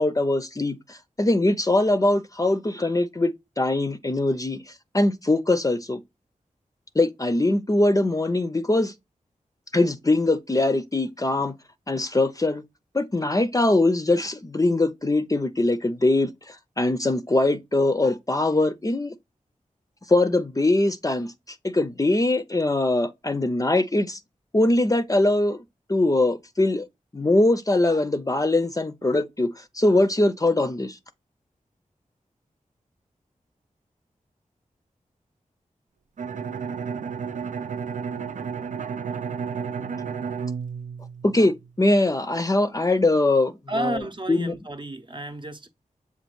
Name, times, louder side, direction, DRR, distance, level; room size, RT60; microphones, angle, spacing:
voice 1, 0.0-4.6 4.9-6.0 6.9-8.9 9.7-11.5 11.9-12.6 12.9-19.1 20.1-21.3 21.6-24.2 24.5-25.6 25.9-26.9 27.1-29.5 29.7-31.0 41.2-44.5, left 2 dB, 25° left, 0.5 m, -22 dB
Bowed string instrument, 36.2-41.8, right 6 dB, 65° right, 0.4 m, -32 dB
voice 2, 43.7-45.7, right 1 dB, 35° right, 0.7 m, -31 dB
6.8 x 2.4 x 3.0 m
cardioid pair, 55°, 14 cm